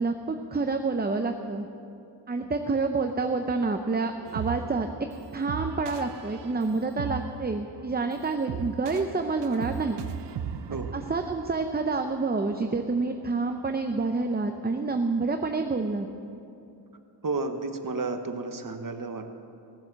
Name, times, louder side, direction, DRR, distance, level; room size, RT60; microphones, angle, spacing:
voice 1, 0.0-1.7 2.3-4.9 5.3-10.0 10.9-16.1, right 3 dB, 25° right, 6 dB, 0.6 m, -28 dB
sound 1, 4.3-12.4, right 7 dB, 85° right, 0.6 m, -38 dB
voice 2, 17.2-19.3, right 3 dB, 50° right, 7 dB, 1.0 m, -32 dB
16.0 x 7.7 x 7.5 m, 2.6 s
wide cardioid pair, 75°, 41 cm